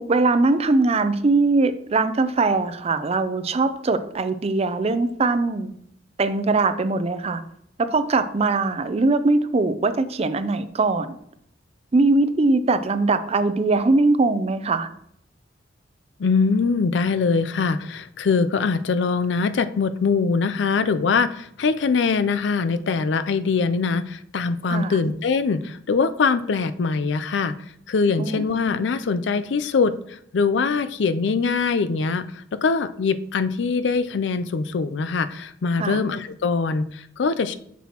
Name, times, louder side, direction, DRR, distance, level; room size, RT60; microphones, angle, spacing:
voice 1, 0.0-5.7 6.2-7.4 7.8-11.2 11.9-14.9 24.7-25.0 28.2-28.4 35.8-36.0, right 3 dB, 35° right, 11 dB, 0.5 m, -21 dB
voice 2, 16.2-27.5 27.9-29.9 30.3-32.2 32.5-37.5, left 4 dB, 70° left, 12 dB, 0.4 m, -22 dB
7.2 x 6.0 x 2.9 m, 0.70 s
head